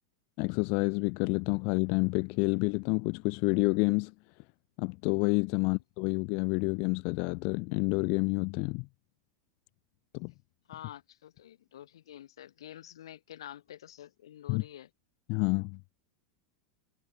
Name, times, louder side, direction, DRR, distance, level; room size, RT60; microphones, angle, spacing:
voice 1, 0.4-4.1 4.8-8.9 10.1-10.3 14.5-14.6 15.3-15.8, left 33 dB, 55° left, 0.4 m, -29 dB
voice 2, 10.7-14.9, left 11 dB, 80° left, 7.3 m, -48 dB
hypercardioid pair, 110°, 3 cm